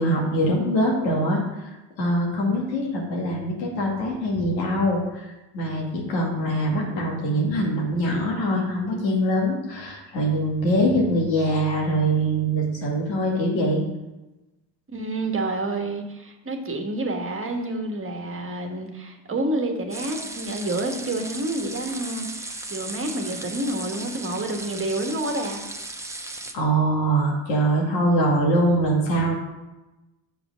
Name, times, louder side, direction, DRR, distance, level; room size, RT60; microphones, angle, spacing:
voice 1, 0.0-1.4 2.0-5.2 5.5-13.8 26.5-29.3, right 1 dB, 85° left, -1 dB, 2.3 m, -23 dB
voice 2, 14.9-25.6, right 2 dB, 25° right, 3 dB, 1.5 m, -29 dB
sound 1, 19.9-26.5, right 2 dB, 5° right, 0.9 m, -36 dB
6.9 x 5.1 x 6.3 m, 1.0 s
hypercardioid pair, 70°, 49 cm